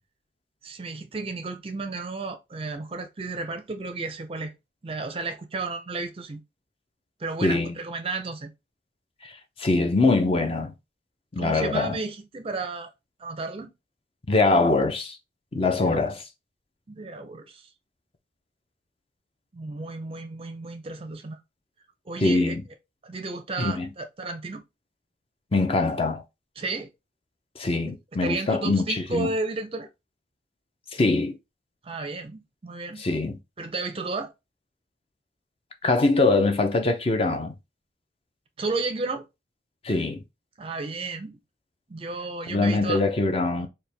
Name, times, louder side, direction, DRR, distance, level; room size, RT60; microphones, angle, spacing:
voice 1, 0.6-4.5 4.8-6.4 7.2-8.5 11.4-12.9 13.2-13.7 15.7-16.0 16.9-17.7 19.5-21.4 22.1-22.6 23.0-24.6 26.6-26.9 28.2-29.9 31.8-33.0 33.6-34.3 38.6-39.3 40.6-41.4 41.9-43.0, right 3 dB, 30° right, 0.5 m, -33 dB
voice 2, 7.4-7.7 9.2-9.3 9.6-10.7 11.3-12.0 14.3-15.2 15.5-16.2 22.2-22.6 23.6-23.9 25.5-26.2 27.6-29.3 30.9-31.3 33.0-33.4 35.8-37.5 39.8-40.2 42.5-43.7, left 3 dB, 30° left, 0.5 m, -23 dB
4.4 x 2.2 x 3.3 m
head